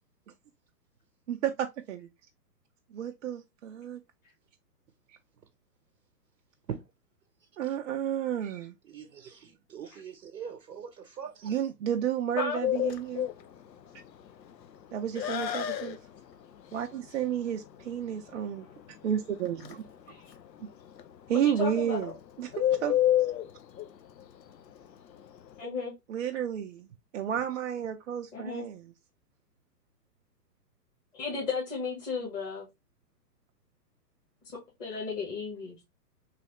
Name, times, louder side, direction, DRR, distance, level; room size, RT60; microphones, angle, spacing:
voice 1, 1.3-2.1 2.9-4.0 5.1-5.2 7.6-8.8 11.4-13.3 14.9-16.0 16.7-18.7 19.0-19.8 21.3-22.1 22.4-23.0 26.1-26.9 27.1-28.8, right 9 dB, 50° right, 0.5 m, -31 dB
voice 2, 8.9-11.6, right 7 dB, 80° right, 0.9 m, -42 dB
Bird, 12.6-25.6, left 12 dB, 85° left, 0.6 m, -32 dB
voice 3, 21.4-22.0 25.6-26.0 28.3-28.6 31.2-32.7 34.8-35.8, left 5 dB, 20° left, 1.1 m, -34 dB
3.2 x 3.0 x 2.9 m
hypercardioid pair, 130°, 49 cm